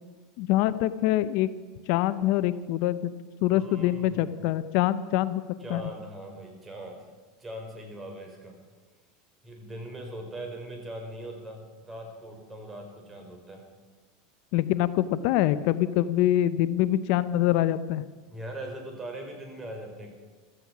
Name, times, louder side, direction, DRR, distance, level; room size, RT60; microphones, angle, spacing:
voice 1, 0.4-1.5 1.9-3.1 3.4-5.4 5.7-5.8 14.5-18.0, left 13 dB, 65° left, 14 dB, 0.6 m, -24 dB
voice 2, 3.5-4.3 5.6-7.1 7.4-8.6 9.4-13.7 18.3-20.1, right 1 dB, 15° right, 2 dB, 4.7 m, -40 dB
15.5 x 13.5 x 5.9 m, 1.4 s
supercardioid pair, 120°, 0 cm